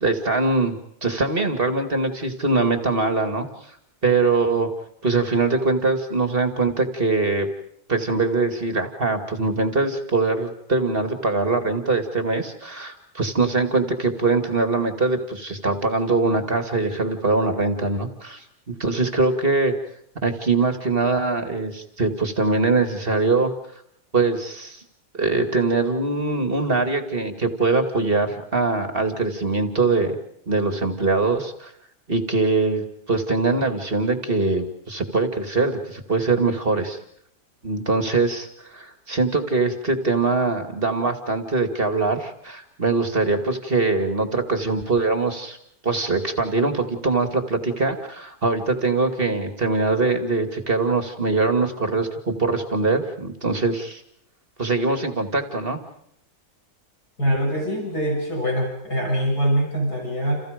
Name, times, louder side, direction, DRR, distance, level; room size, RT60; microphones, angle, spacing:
voice 1, 0.0-3.5 4.0-4.7 5.0-7.5 7.9-18.4 18.8-19.7 20.2-23.5 24.1-24.8 25.1-30.1 30.5-31.7 32.1-37.0 37.6-45.6 45.8-54.0 54.6-55.8, right 3 dB, 35° right, 6 dB, 2.5 m, -22 dB
voice 2, 57.2-60.4, equal, 70° left, 1 dB, 7.5 m, -23 dB
30.0 x 29.0 x 5.2 m, 0.71 s
omnidirectional pair, 1.8 m